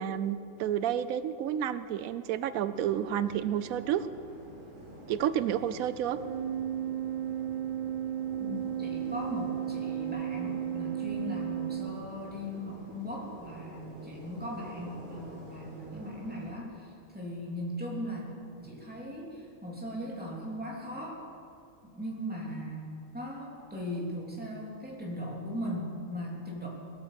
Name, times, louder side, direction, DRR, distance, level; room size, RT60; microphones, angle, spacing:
voice 1, 0.0-4.1 5.1-6.2, right 10 dB, 90° right, 13 dB, 1.0 m, -30 dB
sound 1, 2.7-16.5, right 1 dB, 35° right, 2.6 m, -48 dB
Organ, 6.1-12.6, right 10 dB, 60° right, 0.5 m, -34 dB
voice 2, 8.4-18.2 18.6-21.2 21.8-26.7, equal, 5° right, -4 dB, 3.2 m, -38 dB
20.0 x 8.9 x 7.5 m, 2.4 s
omnidirectional pair, 1.4 m